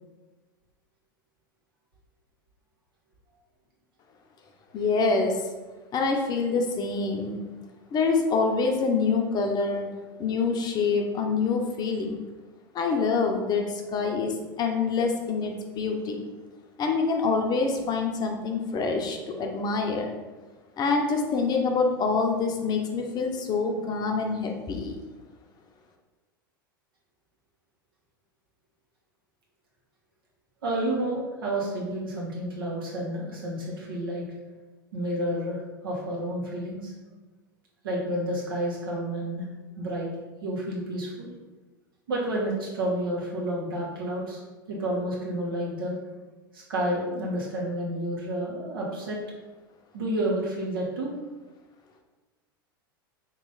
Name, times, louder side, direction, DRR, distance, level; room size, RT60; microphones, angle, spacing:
voice 1, 4.7-5.4 5.9-7.4 7.9-9.9 10.2-12.2 12.7-16.2 16.8-20.1 20.8-25.0, left 4 dB, 35° left, 3 dB, 0.7 m, -26 dB
voice 2, 30.6-34.2 34.9-36.9 37.8-39.5 39.8-40.1 40.4-41.3 42.1-44.4 44.7-45.9 46.5-49.2 49.9-51.1, right 1 dB, 80° right, -4 dB, 1.5 m, -30 dB
3.8 x 3.1 x 3.9 m, 1.2 s
hypercardioid pair, 90°, 12 cm